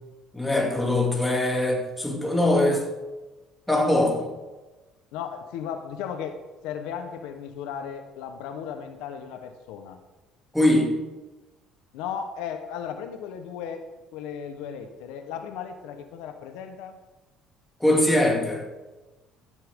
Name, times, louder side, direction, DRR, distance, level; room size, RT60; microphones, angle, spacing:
voice 1, 0.3-2.8 3.7-4.3 10.5-10.9 17.8-18.6, left 1 dB, 5° left, -1 dB, 2.7 m, -22 dB
voice 2, 5.1-6.4 6.6-10.0 11.9-13.8 14.1-17.0, left 8 dB, 85° left, 7 dB, 1.1 m, -35 dB
15.5 x 9.7 x 3.7 m, 1.1 s
cardioid pair, 120°, 0 cm